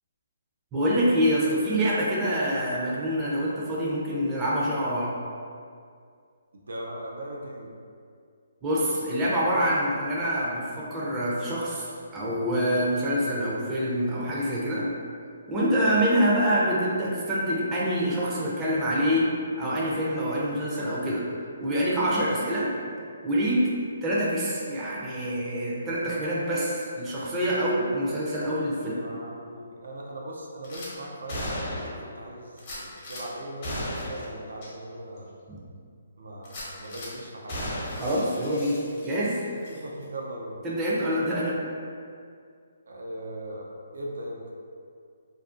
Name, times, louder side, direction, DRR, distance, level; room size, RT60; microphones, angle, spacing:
voice 1, 0.7-5.1 8.6-14.9 15.5-19.3 19.6-21.3 21.6-22.7 23.2-23.7 24.0-29.0 35.5-35.6 37.9-39.4 40.6-41.6, equal, 15° right, -6 dB, 0.4 m, -26 dB
voice 2, 6.7-7.7 15.8-16.0 28.9-35.3 36.2-37.6 39.7-40.6 42.9-44.4, right 1 dB, 80° right, -2 dB, 0.4 m, -39 dB
Gunshot gunfire / Glass, 30.6-30.9 31.3-32.1 32.6-33.2 33.6-34.3 34.6-34.7 35.2-35.3 36.4-37.1 37.5-39.3 39.6-39.8, left 1 dB, 40° left, 0.7 m, -35 dB
2.5 x 2.1 x 2.4 m, 2.2 s
hypercardioid pair, 150°, 0 cm